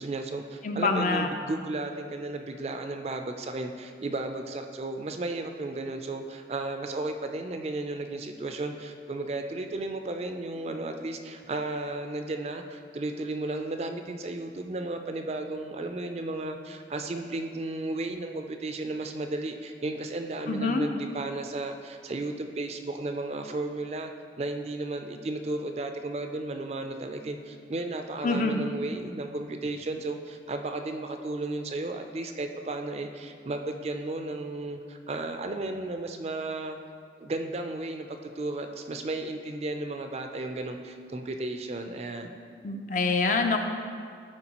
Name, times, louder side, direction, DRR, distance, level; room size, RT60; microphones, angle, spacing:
voice 1, 0.0-24.1 24.4-36.8 37.2-42.3, right 2 dB, 35° right, 6 dB, 0.4 m, -34 dB
voice 2, 0.6-1.3 20.5-20.9 28.2-28.6 42.6-43.7, left 3 dB, 45° left, 4 dB, 0.5 m, -26 dB
12.0 x 4.5 x 2.9 m, 2.1 s
head